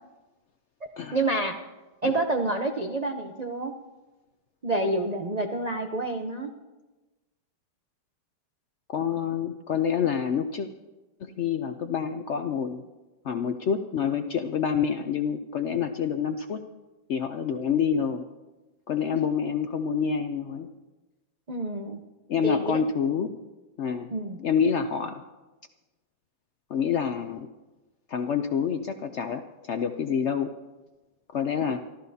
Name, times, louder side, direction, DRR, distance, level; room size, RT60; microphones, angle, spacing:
voice 1, 1.1-1.6 2.0-3.7 4.6-6.5 21.5-22.0 22.4-22.8 24.1-24.4, right 2 dB, 60° right, 4 dB, 0.4 m, -28 dB
voice 2, 8.9-10.7 11.2-12.8 13.2-16.6 17.1-18.2 18.9-20.7 22.3-23.4 23.8-24.1 24.4-25.2 26.7-27.5 28.1-30.5 31.3-31.8, left 7 dB, 80° left, 7 dB, 0.6 m, -27 dB
27.0 x 13.0 x 2.8 m, 1.1 s
omnidirectional pair, 1.9 m